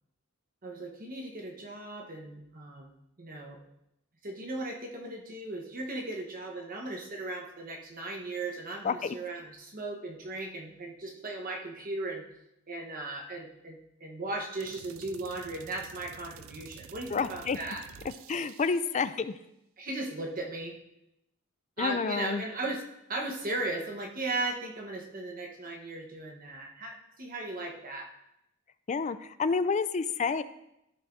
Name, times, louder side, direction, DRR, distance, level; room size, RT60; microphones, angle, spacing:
voice 1, 0.6-3.6 4.2-12.2 12.7-17.8 19.8-20.8 21.8-22.8 23.1-28.1, right 2 dB, 40° right, 0 dB, 1.1 m, -37 dB
voice 2, 8.8-9.2 17.1-17.6 18.3-19.3 21.8-22.4 28.9-30.4, left 5 dB, 35° left, 13 dB, 0.4 m, -29 dB
sound 1, 14.6-19.0, right 8 dB, 70° right, 0.4 m, -50 dB
13.5 x 6.6 x 2.6 m, 0.84 s
head